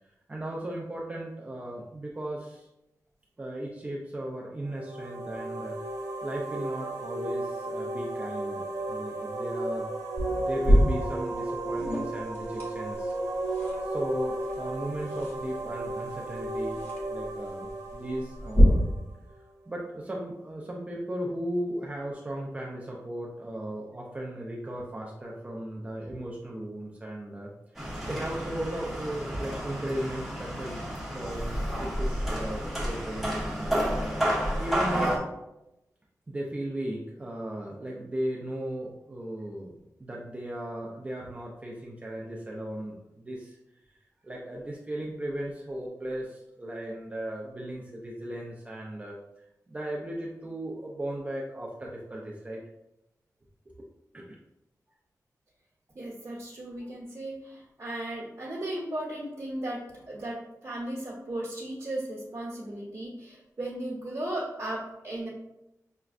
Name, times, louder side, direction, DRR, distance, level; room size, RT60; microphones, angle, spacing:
voice 1, 0.3-2.7 3.4-5.8 6.2-9.9 10.2-13.1 13.8-16.8 17.1-18.8 19.3-30.7 31.1-33.8 34.6-35.2 36.3-43.6 44.2-52.6 53.8-53.9 54.1-54.4, right 1 dB, 20° right, -3 dB, 0.4 m, -36 dB
sound 1, 4.6-19.3, right 2 dB, 65° right, 0.7 m, -34 dB
sound 2, 10.2-18.6, equal, 30° left, 1.3 m, -31 dB
sound 3, 27.7-35.2, equal, ahead, 1.0 m, -31 dB
voice 2, 55.9-65.3, right 1 dB, 45° right, -6 dB, 1.0 m, -36 dB
5.9 x 2.2 x 2.4 m, 0.90 s
wide cardioid pair, 130°, 6 cm